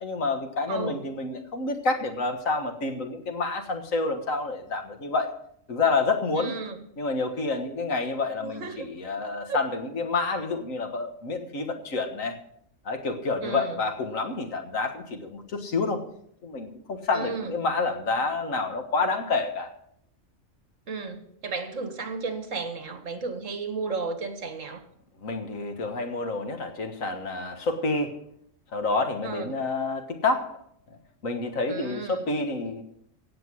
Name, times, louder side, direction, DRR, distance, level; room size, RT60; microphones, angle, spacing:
voice 1, 0.0-5.3 5.7-6.5 7.0-12.4 12.9-16.0 16.4-19.7 25.2-28.2 28.7-30.6 31.2-32.8, left 3 dB, 85° left, 6 dB, 1.9 m, -28 dB
voice 2, 0.7-1.0 6.4-6.8 8.4-8.9 9.5-9.6 13.4-13.8 17.1-17.5 20.9-24.8 29.2-29.5 31.7-32.3, right 4 dB, 75° right, 7 dB, 1.9 m, -33 dB
16.5 x 7.7 x 6.3 m, 0.71 s
omnidirectional pair, 1.3 m